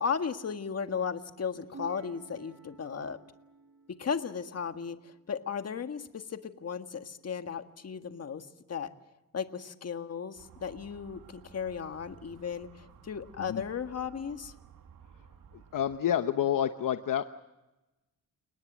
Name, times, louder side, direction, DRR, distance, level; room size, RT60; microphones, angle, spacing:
voice 1, 0.0-3.2 4.0-8.9 9.3-14.5, left 6 dB, 45° left, 7 dB, 1.7 m, -35 dB
sound 1, 1.7-5.4 7.9-8.3, right 3 dB, 55° right, 2.1 m, -52 dB
Motor vehicle (road) / Siren, 10.4-16.0, right 7 dB, 70° right, 1.7 m, -55 dB
voice 2, 15.5-17.2, left 10 dB, 70° left, 9 dB, 0.9 m, -29 dB
30.0 x 18.5 x 7.5 m, 1.0 s
wide cardioid pair, 115°, 34 cm